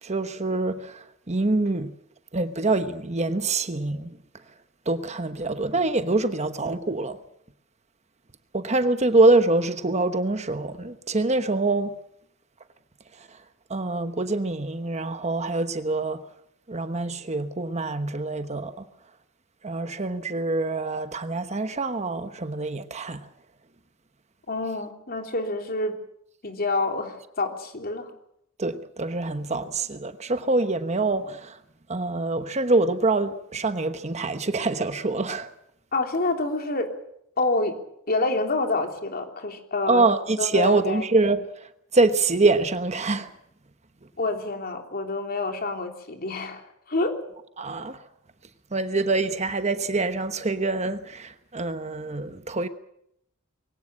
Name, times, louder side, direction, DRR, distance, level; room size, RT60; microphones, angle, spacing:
voice 1, 0.0-1.9 2.3-4.2 4.9-7.2 8.5-11.9 13.2-13.3 13.7-16.2 16.7-18.7 19.6-23.2 28.6-31.6 31.9-35.5 39.9-41.5 41.9-43.3 47.6-48.0 48.7-52.7, right 3 dB, 30° right, 1.1 m, -25 dB
voice 2, 24.5-26.0 26.4-28.1 35.9-36.9 37.4-37.8 38.1-40.0 40.4-41.0 44.2-47.2, left 2 dB, 45° left, 3.3 m, -27 dB
22.5 x 17.5 x 8.8 m
head